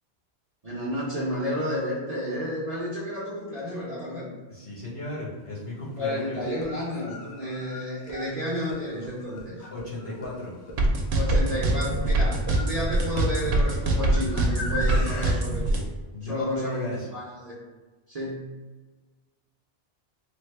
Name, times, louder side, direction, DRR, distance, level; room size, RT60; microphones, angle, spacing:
voice 1, 0.6-4.3 6.0-9.6 11.1-15.8 16.2-17.5 18.1-18.5, equal, 40° right, -7 dB, 0.6 m, -31 dB
voice 2, 4.5-6.5 9.7-10.5 12.7-13.0 16.1-17.1, left 2 dB, 30° left, -9 dB, 1.0 m, -35 dB
sound 1, 5.3-5.4 6.4-15.3, left 2 dB, 80° left, 0.9 m, -39 dB
sound 2, 10.8-15.8, right 2 dB, 70° right, 0.8 m, -23 dB
3.4 x 2.2 x 3.2 m, 1.3 s
omnidirectional pair, 1.1 m